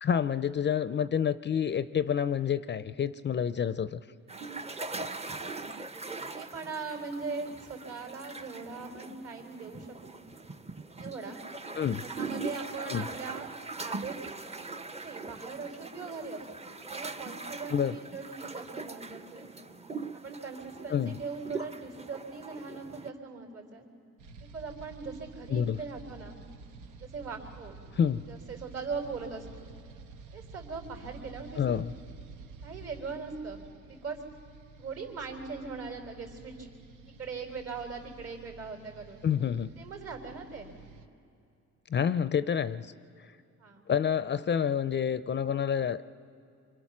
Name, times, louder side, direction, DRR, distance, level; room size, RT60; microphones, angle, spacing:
voice 1, 0.0-4.0 11.8-12.0 12.9-13.1 17.7-18.0 20.9-21.2 25.5-25.8 27.9-28.3 31.6-31.9 39.2-39.7 41.9-42.9 43.9-46.0, left 8 dB, 35° left, 14 dB, 0.5 m, -28 dB
sound 1, 4.3-23.1, right 3 dB, 20° right, 0.8 m, -41 dB
voice 2, 6.0-10.2 11.0-11.4 12.0-13.5 13.8-14.3 15.0-19.5 20.2-23.9 24.5-26.4 27.0-27.8 28.3-29.8 30.3-31.6 32.6-34.2 34.8-36.7 37.2-39.3 39.8-40.7 43.6-43.9, right 4 dB, 55° right, 3 dB, 3.9 m, -40 dB
sound 2, 24.2-41.1, right 4 dB, 85° right, 0.9 m, -50 dB
26.5 x 24.0 x 6.1 m, 2.6 s
cardioid pair, 90°, 30 cm